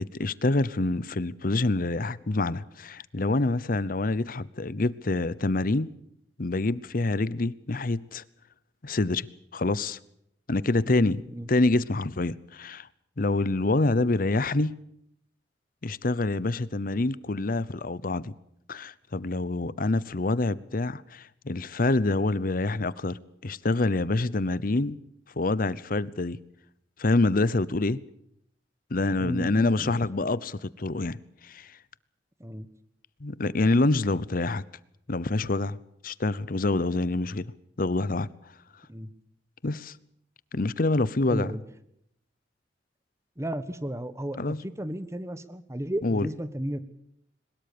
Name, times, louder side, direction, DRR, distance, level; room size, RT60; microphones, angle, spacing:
voice 1, 0.0-5.9 6.4-8.2 8.8-9.3 9.5-10.0 10.5-11.2 11.5-12.9 13.2-14.8 15.8-18.3 18.7-25.0 25.4-26.4 27.0-28.0 28.9-31.2 31.4-31.7 33.2-34.6 35.1-35.8 36.0-37.5 37.8-38.3 39.6-39.9 40.5-41.5 44.4-44.6 46.0-46.3, left 2 dB, 50° left, 0.8 m, -26 dB
voice 2, 10.8-11.5 14.0-14.1 29.2-30.0 32.4-32.7 38.9-39.1 41.3-41.6 43.4-46.8, right 1 dB, 15° right, 1.4 m, -34 dB
22.5 x 20.5 x 6.8 m
head